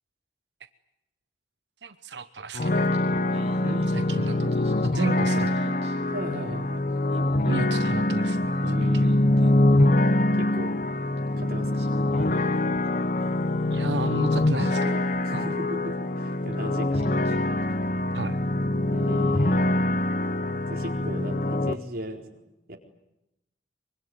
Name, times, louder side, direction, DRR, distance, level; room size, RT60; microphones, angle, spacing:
voice 1, 1.8-2.9 3.9-4.6 4.9-5.8 7.5-8.5 8.9-9.1 13.7-15.4 18.1-18.4, right 3 dB, 75° right, 11 dB, 1.0 m, -34 dB
sound 1, 2.5-21.7, left 1 dB, 45° left, 1.0 m, -24 dB
Singing, 2.8-6.6 6.9-10.2 11.2-11.3 11.7-15.9 16.5-16.6 16.9-17.7, right 2 dB, 35° right, 6.7 m, -51 dB
voice 2, 6.1-6.8 8.6-9.1 10.3-10.8 11.4-11.9 15.2-17.1 17.5-17.6 18.9-19.7 20.7-22.8, right 1 dB, 55° right, 2 dB, 4.4 m, -37 dB
24.0 x 24.0 x 9.5 m, 0.88 s
head